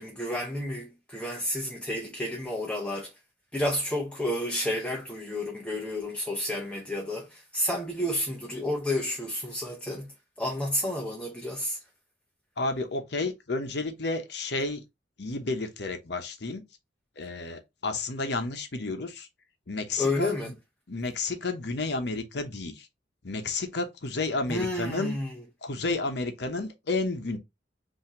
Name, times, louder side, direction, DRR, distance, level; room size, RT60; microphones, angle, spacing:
voice 1, 0.0-3.1 3.5-10.1 10.4-11.8 20.0-20.5 24.5-25.4, left 1 dB, 5° left, 0.8 m, -31 dB
voice 2, 12.6-14.8 15.2-16.6 17.2-19.3 19.7-20.5 20.9-22.9 23.2-25.2 25.6-27.4, left 3 dB, 65° left, 0.9 m, -31 dB
5.8 x 2.8 x 2.9 m
head